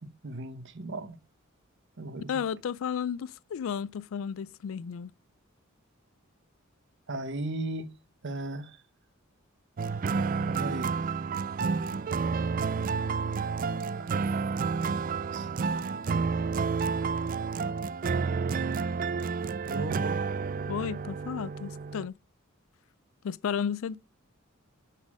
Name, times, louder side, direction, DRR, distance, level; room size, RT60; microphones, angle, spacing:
voice 1, 0.0-1.2 2.0-2.4 7.1-7.9 8.2-8.8 10.4-10.9 14.0-14.1 14.6-15.5 19.6-20.2, right 2 dB, 60° right, 0.9 m, -37 dB
voice 2, 2.3-5.1 20.7-22.2 23.2-24.0, left 7 dB, 70° left, 0.3 m, -33 dB
sound 1, 9.8-22.1, right 5 dB, 40° right, 0.3 m, -30 dB
9.6 x 4.1 x 6.1 m
head